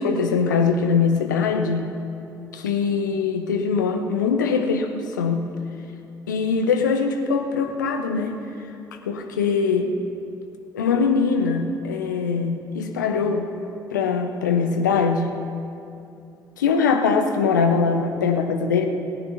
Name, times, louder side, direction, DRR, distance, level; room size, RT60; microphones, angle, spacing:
voice 1, 0.0-1.9 2.5-5.5 6.3-8.7 9.1-10.0 10.7-13.5 13.9-15.4 16.6-18.9, left 5 dB, 80° left, 5 dB, 0.9 m, -22 dB
18.0 x 8.9 x 5.6 m, 2.7 s
figure-of-eight pair, 45°, 10 cm